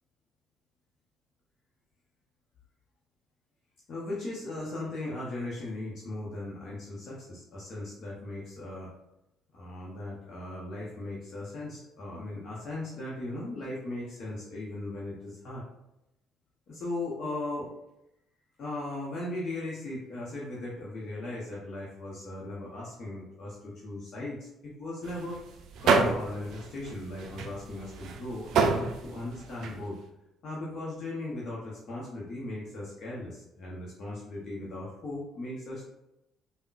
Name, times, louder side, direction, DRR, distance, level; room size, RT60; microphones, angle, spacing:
voice 1, 3.9-8.9 9.5-15.6 16.7-17.7 18.6-24.5 24.8-25.4 25.8-29.9 30.4-35.9, left 2 dB, 55° left, -5 dB, 0.7 m, -37 dB
sound 1, 25.0-29.8, right 4 dB, 65° right, 0.3 m, -29 dB
3.6 x 2.1 x 2.5 m, 0.88 s
hypercardioid pair, 60°, 0 cm